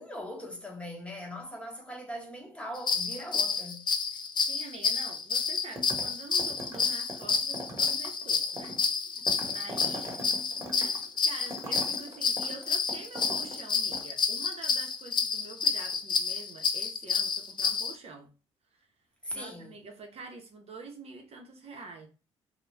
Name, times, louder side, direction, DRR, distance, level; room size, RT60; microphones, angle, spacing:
voice 1, 0.0-3.9 19.2-19.8, equal, 10° left, 0.9 m, -40 dB
sound 1, 2.7-17.9, left 5 dB, 35° left, 0.4 m, -29 dB
voice 2, 4.5-8.8 9.5-10.2 10.8-18.3 18.7-18.9 19.3-22.1, right 4 dB, 55° right, 0.7 m, -46 dB
sound 2, 5.8-6.1 6.4-13.6 13.9-14.0, equal, 25° right, 1.1 m, -41 dB
2.2 x 2.0 x 3.2 m
supercardioid pair, 65°, 13 cm